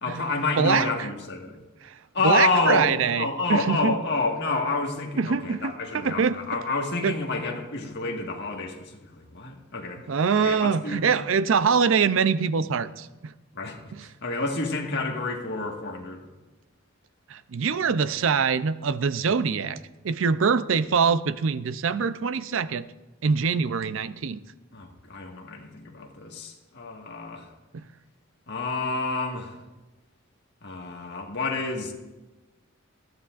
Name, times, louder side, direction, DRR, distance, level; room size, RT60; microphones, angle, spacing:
voice 1, 0.0-1.6 2.1-10.0 10.4-11.0 13.5-13.8 14.2-16.2 24.7-27.5 28.5-29.6 30.6-31.9, left 3 dB, 55° left, 0 dB, 1.7 m, -29 dB
voice 2, 0.6-0.9 1.8-1.9 2.2-4.0 5.2-6.4 7.0-7.1 10.1-13.3 13.9-14.1 17.3-22.9 23.2-24.4 27.7-27.8, right 6 dB, 65° right, 14 dB, 0.5 m, -24 dB
19.5 x 13.0 x 2.5 m, 1.1 s
head